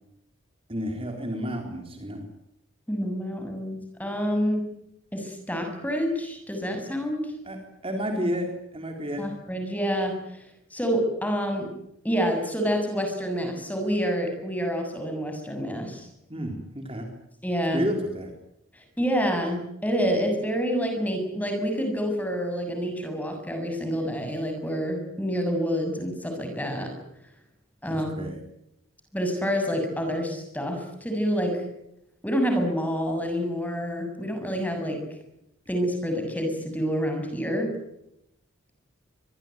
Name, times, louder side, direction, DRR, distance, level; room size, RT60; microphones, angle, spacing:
voice 1, 0.7-2.2 7.5-7.6 7.8-9.2 16.3-17.1 17.7-18.3 27.8-28.3, equal, 25° right, 3 dB, 4.0 m, -31 dB
voice 2, 2.9-4.7 5.1-7.3 9.2-10.4 10.7-11.7 12.0-16.1 17.4-17.9 18.7-26.9 27.8-28.2 29.1-31.6 32.2-35.0 35.7-37.7, equal, 5° left, 4 dB, 7.1 m, -28 dB
25.5 x 22.0 x 9.2 m, 0.81 s
head